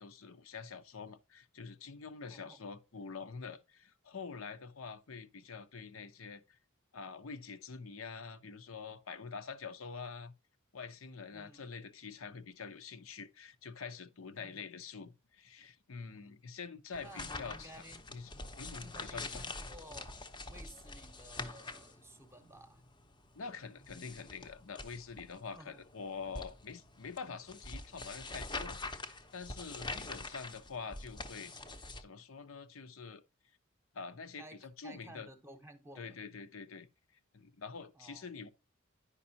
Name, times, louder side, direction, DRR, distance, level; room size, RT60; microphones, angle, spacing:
voice 1, 0.0-6.6 6.9-10.3 10.7-17.8 18.1-18.3 18.6-19.4 23.4-31.7 32.0-33.2 33.9-35.3 36.0-36.9 37.3-38.5, left 5 dB, 80° left, 0.8 m, -46 dB
voice 2, 2.3-2.6 11.3-11.7 14.3-14.6 17.0-18.0 18.8-20.2 20.5-22.8 25.5-25.8 29.8-30.2 34.4-36.2 37.9-38.4, right 1 dB, 15° right, 0.9 m, -55 dB
sound 1, 16.9-32.0, left 3 dB, 20° left, 0.7 m, -45 dB
9.8 x 5.3 x 2.8 m
head